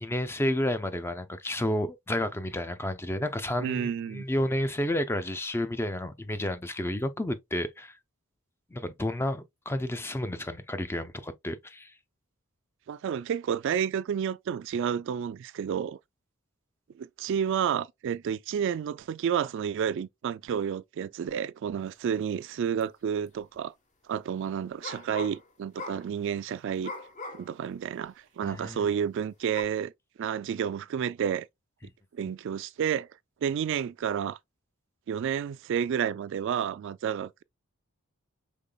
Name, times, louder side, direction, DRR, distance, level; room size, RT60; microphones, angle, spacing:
voice 1, 0.0-8.0 8.7-11.9 28.4-28.9, left 1 dB, 10° left, 0.4 m, -31 dB
voice 2, 3.6-4.3 12.9-16.0 17.0-23.7 24.1-26.9 27.3-29.9 30.2-31.5 32.1-33.1 33.4-34.4 35.1-37.4, right 8 dB, 60° right, 0.3 m, -30 dB
sound 1, 22.8-22.9 23.3-23.6 24.8-25.5 25.8-26.1 26.8-27.6 28.0-28.1 29.5-29.6, left 3 dB, 35° left, 1.0 m, -40 dB
5.2 x 3.7 x 2.2 m
head